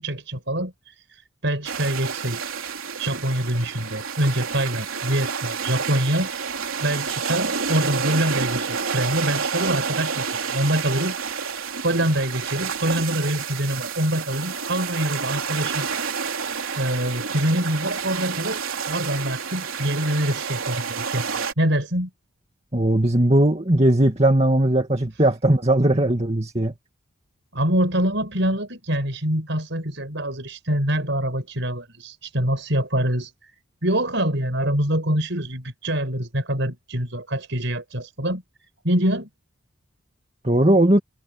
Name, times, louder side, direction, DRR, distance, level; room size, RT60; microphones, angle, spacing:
voice 1, 0.0-2.4 3.0-6.3 6.8-11.6 11.8-16.0 16.8-22.1 27.5-38.4 38.8-39.3, right 1 dB, 60° right, 6.6 m, -25 dB
sound 1, 1.6-21.5, right 6 dB, 85° right, 3.3 m, -29 dB
voice 2, 22.7-26.7 40.4-41.0, right 1 dB, 30° right, 2.3 m, -18 dB
head